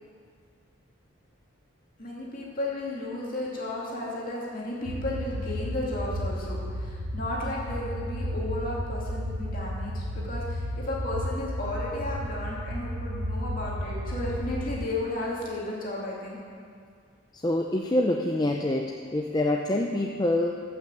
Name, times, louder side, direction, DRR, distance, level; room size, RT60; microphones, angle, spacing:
voice 1, 2.0-16.4, left 2 dB, 40° left, -5 dB, 2.4 m, -34 dB
sound 1, 4.9-14.8, equal, 75° right, 0.9 m, -33 dB
voice 2, 17.3-20.5, left 1 dB, 20° left, 2 dB, 0.5 m, -26 dB
14.5 x 6.2 x 7.3 m, 2.2 s
head